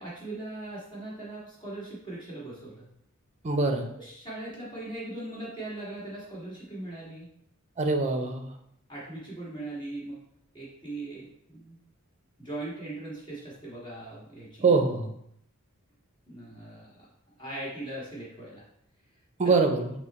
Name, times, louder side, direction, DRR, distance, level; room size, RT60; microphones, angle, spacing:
voice 1, 0.0-2.8 3.9-7.3 8.9-10.2 10.5-11.8 12.4-14.7 16.3-17.1 17.4-18.6 19.4-19.5, right 2 dB, 20° left, -6 dB, 1.7 m, -39 dB
voice 2, 3.4-3.9 7.8-8.5 14.6-15.1 19.4-19.9, right 4 dB, 30° right, 4 dB, 0.6 m, -23 dB
6.0 x 2.1 x 4.1 m, 0.73 s
head